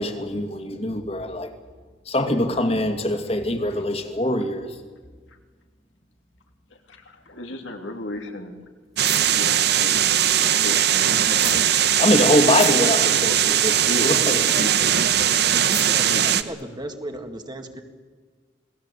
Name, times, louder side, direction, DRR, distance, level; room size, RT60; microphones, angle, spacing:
voice 1, 0.0-1.5 2.1-4.8 12.0-14.4, left 1 dB, 35° left, 6 dB, 2.5 m, -23 dB
voice 2, 6.9-8.6 9.3-12.2 12.9-13.4 13.8-14.2 14.4-14.7 15.2-15.6 16.1-16.3, left 1 dB, 85° left, 4 dB, 3.2 m, -35 dB
sound 1, 9.0-11.0 11.3-11.7 11.9-12.0 12.5-12.9 13.7-14.8 15.6-16.1 16.6-16.7, equal, ahead, 2.1 m, -40 dB
sound 2, 9.0-16.4, right 10 dB, 60° right, 1.1 m, -20 dB
voice 3, 15.7-17.8, right 1 dB, 25° right, 5 dB, 2.1 m, -35 dB
28.0 x 19.5 x 8.4 m, 1.5 s
head